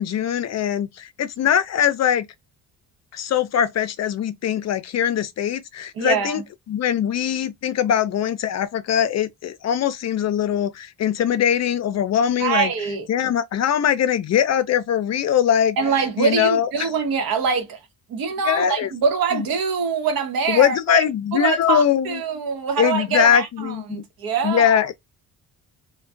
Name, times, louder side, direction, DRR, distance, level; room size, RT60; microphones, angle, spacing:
voice 1, 0.0-2.3 3.1-6.4 6.7-12.7 13.1-15.8 16.2-16.9 18.4-18.9 19.3-19.5 20.5-22.2 22.8-24.0 24.4-24.9, left 9 dB, 50° left, 0.4 m, -21 dB
voice 2, 6.0-6.4 12.4-13.1 15.8-17.8 18.1-21.0 21.3-24.8, right 6 dB, 75° right, 0.9 m, -24 dB
2.4 x 2.2 x 2.4 m
cardioid pair, 80°, 36 cm